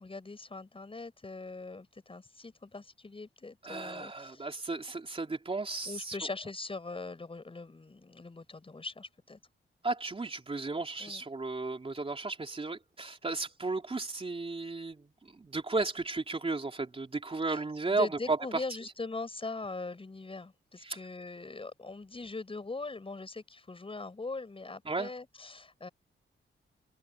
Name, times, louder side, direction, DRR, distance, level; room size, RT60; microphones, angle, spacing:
voice 1, 0.0-4.5 5.9-9.4 11.0-11.2 17.5-17.6 17.9-25.9, left 3 dB, 25° left, 7.0 m, -41 dB
voice 2, 3.6-6.2 9.8-15.0 15.3-18.6 20.8-21.0 24.9-25.1, right 3 dB, 25° right, 3.4 m, -34 dB
wide cardioid pair, 110°, 21 cm